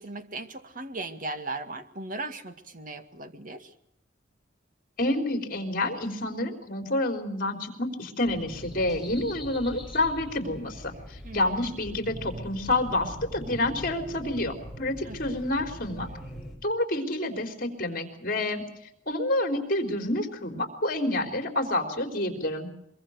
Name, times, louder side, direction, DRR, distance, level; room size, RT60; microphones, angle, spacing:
voice 1, 0.0-3.7 11.2-11.8 15.0-15.4, right 2 dB, 45° right, 8 dB, 2.0 m, -38 dB
voice 2, 5.0-16.1 16.6-18.6 19.1-22.7, left 1 dB, 50° left, 6 dB, 4.0 m, -28 dB
sound 1, 8.2-16.6, equal, ahead, 5.5 m, -42 dB
24.0 x 23.0 x 6.6 m, 0.75 s
head